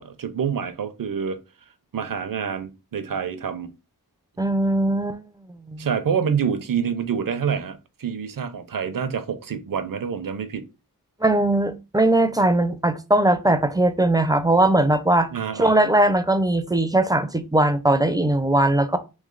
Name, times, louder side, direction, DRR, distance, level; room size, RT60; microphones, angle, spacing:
voice 1, 0.0-1.4 1.9-3.7 5.8-10.7 15.3-15.7, right 7 dB, 60° right, 0.6 m, -27 dB
voice 2, 4.4-5.2 5.5-5.9 11.2-15.3 15.6-19.0, right 1 dB, 10° right, 0.4 m, -20 dB
3.2 x 3.1 x 3.8 m
wide cardioid pair, 75°, 37 cm